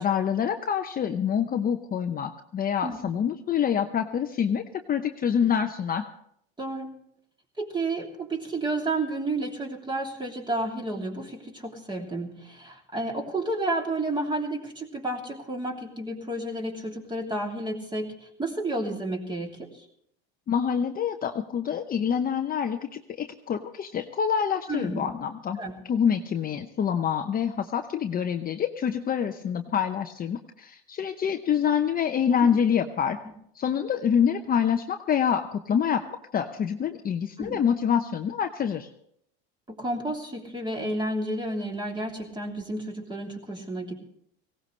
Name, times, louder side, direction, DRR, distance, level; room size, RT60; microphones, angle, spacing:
voice 1, 0.0-6.0 20.5-25.6 25.9-33.2 33.5-36.0 36.3-38.9, left 8 dB, 30° left, 5 dB, 0.8 m, -26 dB
voice 2, 6.6-6.9 7.6-19.7 24.7-25.1 25.6-25.7 37.4-37.6 39.7-43.9, right 2 dB, 15° right, 1 dB, 3.0 m, -31 dB
18.5 x 17.0 x 3.3 m, 0.72 s
supercardioid pair, 115°, 30 cm